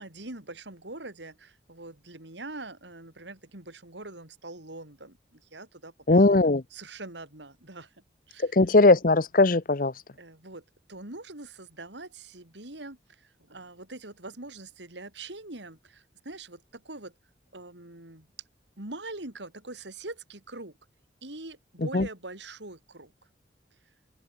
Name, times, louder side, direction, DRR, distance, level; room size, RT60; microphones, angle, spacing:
voice 1, 0.0-7.9 8.3-8.6 10.2-17.1 17.5-18.3 18.8-20.8 21.2-23.1, right 2 dB, 75° right, 3.8 m, -43 dB
voice 2, 6.1-6.6 8.4-9.9 21.9-22.1, left 2 dB, 50° left, 0.8 m, -19 dB
open air
head